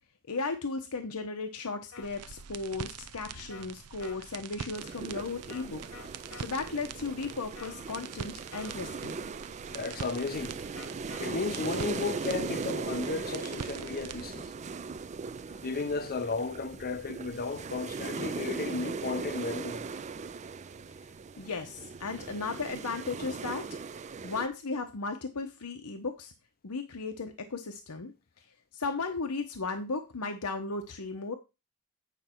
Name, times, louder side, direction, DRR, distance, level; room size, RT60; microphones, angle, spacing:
voice 1, 0.3-9.2 21.4-23.7 24.2-26.3 26.6-28.1 28.4-28.5 28.7-31.3, left 4 dB, 90° left, 1.0 m, -36 dB
sound 1, 1.9-2.1 3.5-3.7 4.0-4.2 5.5-5.6 5.9-6.5 7.6-7.9 8.5-8.8 10.8-11.2, left 5 dB, 75° left, 1.2 m, -47 dB
sound 2, 2.0-14.2, right 6 dB, 85° right, 0.6 m, -44 dB
sound 3, 4.8-24.5, right 4 dB, 30° right, 0.4 m, -39 dB
voice 2, 9.7-10.6 11.2-14.5 15.5-19.8, left 4 dB, 45° left, 0.6 m, -34 dB
9.3 x 5.4 x 4.5 m
head